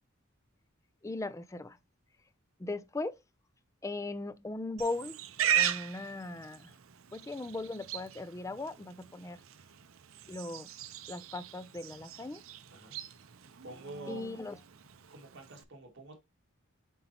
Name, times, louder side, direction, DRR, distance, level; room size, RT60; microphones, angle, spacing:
voice 1, 1.0-1.8 2.6-3.2 3.8-5.2 5.5-6.7 7.1-9.4 10.3-10.7 11.1-12.4 14.1-14.6, left 2 dB, 15° left, 0.3 m, -38 dB
Livestock farm animals working animals, 4.8-15.6, right 9 dB, 70° right, 0.6 m, -38 dB
voice 2, 13.6-14.3 15.1-16.2, right 2 dB, 55° right, 2.1 m, -47 dB
7.8 x 4.5 x 2.8 m
head